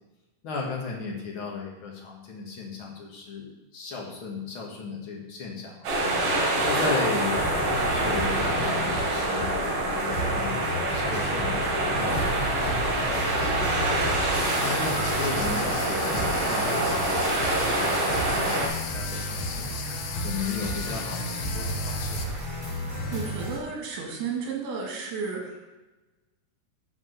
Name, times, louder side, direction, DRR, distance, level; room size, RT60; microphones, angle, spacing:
voice 1, 0.4-5.9 6.6-7.4 7.8-13.7 14.6-19.7 20.2-22.3, left 4 dB, 50° left, -1 dB, 1.7 m, -36 dB
sound 1, 5.8-18.7, right 1 dB, 70° right, 4.2 m, -26 dB
sound 2, 7.3-9.7 10.0-23.6, equal, 15° left, 2.7 m, -33 dB
sound 3, 14.3-22.3, left 8 dB, 75° left, 2.2 m, -37 dB
voice 2, 23.1-25.8, right 5 dB, 85° right, -2 dB, 3.8 m, -33 dB
10.5 x 4.6 x 6.7 m, 1.1 s
omnidirectional pair, 4.3 m